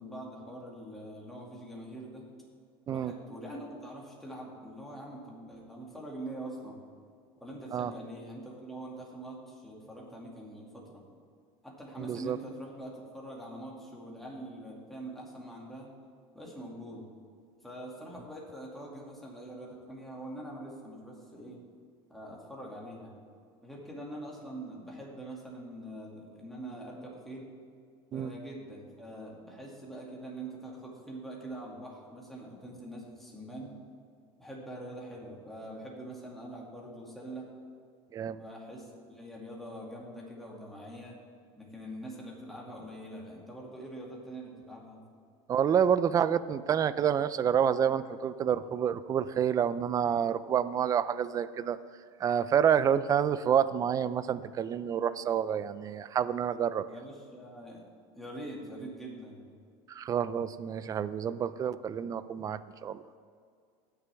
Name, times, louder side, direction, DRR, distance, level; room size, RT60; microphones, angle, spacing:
voice 1, 0.0-2.3 2.9-6.8 7.4-11.0 11.6-15.9 16.3-17.1 17.6-21.6 22.1-23.1 23.6-27.5 28.1-33.7 34.4-37.5 38.4-41.2 41.6-45.0 56.9-57.8 58.1-59.5, right 1 dB, ahead, -3 dB, 2.3 m, -44 dB
voice 2, 12.0-12.4 28.1-28.3 38.1-38.4 45.5-51.8 52.2-56.9 59.9-63.0, right 8 dB, 25° right, 15 dB, 0.4 m, -28 dB
18.0 x 6.8 x 3.5 m, 2.2 s
supercardioid pair, 135°, 14 cm